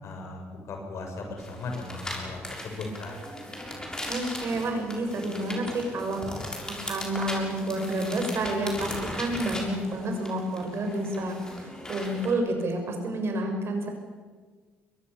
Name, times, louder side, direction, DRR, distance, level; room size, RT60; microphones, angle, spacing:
voice 1, 0.0-3.2, left 3 dB, 60° left, 3 dB, 7.2 m, -37 dB
sound 1, 1.4-12.3, left 1 dB, 15° left, 6.8 m, -38 dB
voice 2, 4.1-13.9, right 1 dB, 50° right, 3 dB, 6.9 m, -30 dB
22.5 x 22.0 x 7.1 m, 1.5 s
supercardioid pair, 65°, 6 cm